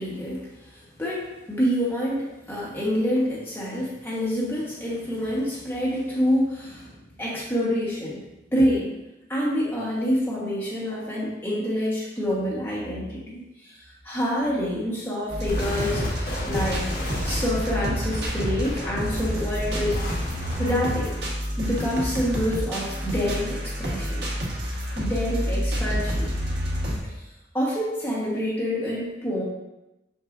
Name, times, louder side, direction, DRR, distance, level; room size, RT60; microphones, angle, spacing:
voice 1, 0.0-8.2 8.5-8.9 9.3-16.9 17.2-21.1 21.6-24.3 25.0-26.3 27.0-27.2 27.5-29.4, equal, 10° left, -7 dB, 1.3 m, -27 dB
sound 1, 15.3-27.0, equal, 70° right, 1.3 m, -29 dB
sound 2, 15.5-20.9, left 1 dB, 55° left, 1.4 m, -33 dB
6.4 x 6.2 x 2.6 m, 0.97 s
head